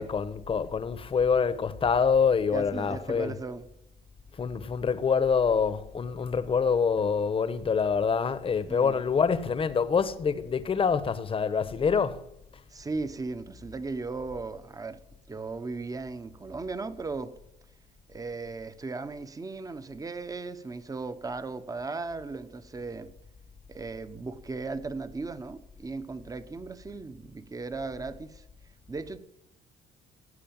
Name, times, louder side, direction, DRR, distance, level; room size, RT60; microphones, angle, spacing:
voice 1, 0.0-3.4 4.4-12.2, left 6 dB, 30° left, 1.2 m, -26 dB
voice 2, 2.5-3.7 8.7-9.0 12.7-15.0 15.3-17.3 18.1-23.1 23.7-28.4 28.9-29.2, right 3 dB, 20° right, 1.2 m, -37 dB
18.0 x 8.4 x 7.3 m
cardioid pair, 110°, 17 cm